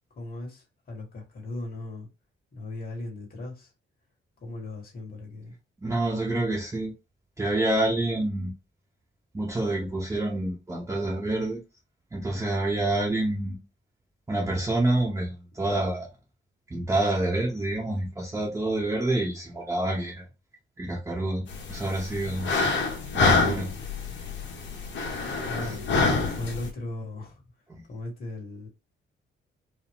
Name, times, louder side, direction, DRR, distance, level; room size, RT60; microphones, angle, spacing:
voice 1, 0.1-2.1 2.5-3.7 4.4-5.6 25.4-27.4 27.9-28.7, left 2 dB, 45° left, 1.9 m, -38 dB
voice 2, 5.8-6.9 7.4-8.5 9.3-11.6 12.1-13.6 14.3-16.1 16.7-20.2 20.8-22.7 23.1-23.7 25.6-26.1 27.7-27.8, right 2 dB, 15° right, 0.9 m, -28 dB
sound 1, 21.5-26.7, left 3 dB, 65° left, 1.3 m, -27 dB
4.8 x 2.2 x 3.6 m
wide cardioid pair, 160°, 20 cm